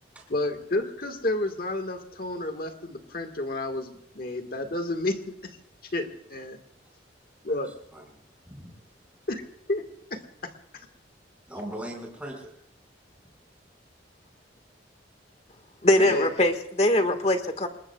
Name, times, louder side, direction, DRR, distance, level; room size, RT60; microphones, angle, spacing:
voice 1, 0.3-5.6 5.9-6.6 7.4-7.7 9.3-9.4 9.7-9.8 10.1-10.9 16.0-16.3, left 2 dB, 50° left, 6 dB, 1.6 m, -31 dB
voice 2, 8.5-8.8 9.2-9.3 11.5-12.6 16.0-16.1, right 1 dB, 5° right, 0 dB, 5.2 m, -39 dB
voice 3, 15.8-17.7, left 1 dB, 35° left, 7 dB, 1.6 m, -22 dB
27.5 x 20.5 x 2.3 m, 0.78 s
head